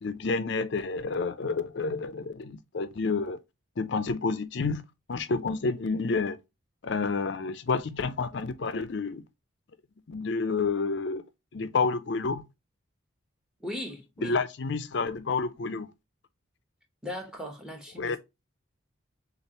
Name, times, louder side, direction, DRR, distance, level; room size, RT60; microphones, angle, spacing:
voice 1, 0.0-3.4 3.8-4.8 5.1-6.4 6.8-9.2 10.1-11.2 11.5-12.4 14.2-15.9 18.0-18.2, left 4 dB, 55° left, 0.5 m, -29 dB
voice 2, 13.6-14.4 17.0-18.2, left 1 dB, 5° right, 1.0 m, -38 dB
6.5 x 2.5 x 2.9 m
head